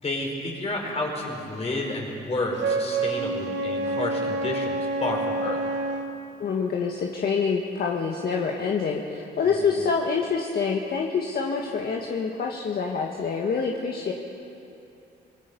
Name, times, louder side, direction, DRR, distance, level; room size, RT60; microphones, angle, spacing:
voice 1, 0.0-5.6 9.4-9.8, left 2 dB, 35° left, 0 dB, 5.0 m, -30 dB
Wind instrument woodwind instrument, 2.6-6.1, right 2 dB, 75° right, 1.9 m, -28 dB
voice 2, 6.4-14.1, left 5 dB, 55° left, 0 dB, 1.7 m, -26 dB
26.0 x 21.5 x 5.5 m, 2.8 s
cardioid pair, 105°, 19 cm